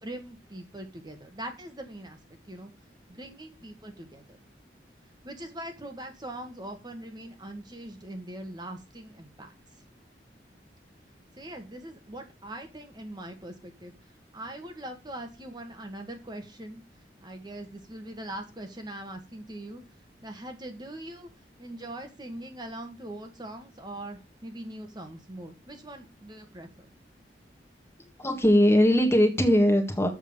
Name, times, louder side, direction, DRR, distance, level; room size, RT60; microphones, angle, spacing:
voice 1, 0.0-2.2 2.5-2.7 3.1-4.4 5.2-9.5 11.3-16.8 17.2-19.8 20.2-26.9, right 1 dB, 25° right, 5 dB, 1.5 m, -41 dB
voice 2, 28.2-30.1, equal, 15° left, 5 dB, 1.7 m, -20 dB
7.5 x 5.8 x 7.0 m, 0.28 s
head